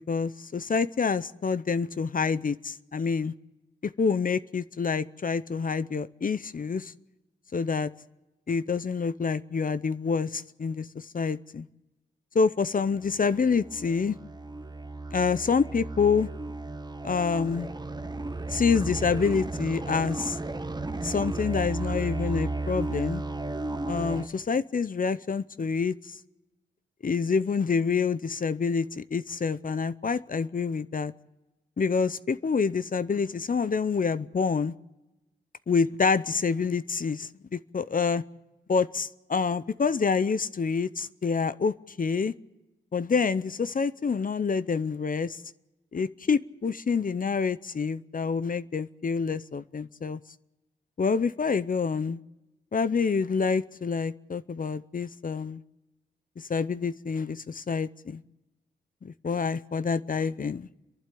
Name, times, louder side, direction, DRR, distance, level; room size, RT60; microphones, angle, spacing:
voice 1, 0.1-3.3 3.8-6.9 7.5-7.9 8.5-11.7 12.3-14.2 15.1-16.3 17.0-17.7 18.5-20.4 21.0-23.2 23.9-26.2 27.0-31.1 31.8-34.7 35.7-38.2 38.7-42.3 42.9-45.4 45.9-50.2 51.0-52.2 52.7-55.6 56.4-58.2 59.0-60.7, left 5 dB, 45° left, 15 dB, 0.7 m, -27 dB
sound 1, 12.9-24.3, right 2 dB, 20° right, 0.9 m, -34 dB
29.5 x 11.5 x 8.4 m, 1.0 s
cardioid pair, 70°, 20 cm